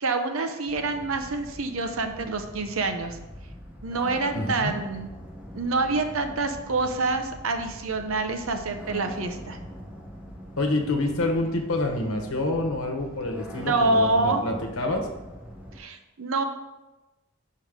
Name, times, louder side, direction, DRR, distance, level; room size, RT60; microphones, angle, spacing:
voice 1, 0.0-3.2 3.8-5.1 5.5-9.6 13.5-14.4 15.8-16.4, right 3 dB, 70° right, 6 dB, 0.7 m, -26 dB
sound 1, 0.7-15.8, equal, 5° right, 1.0 m, -43 dB
voice 2, 4.3-4.8 10.6-15.1, left 2 dB, 70° left, 2 dB, 1.2 m, -27 dB
5.1 x 4.6 x 6.1 m, 1.0 s
head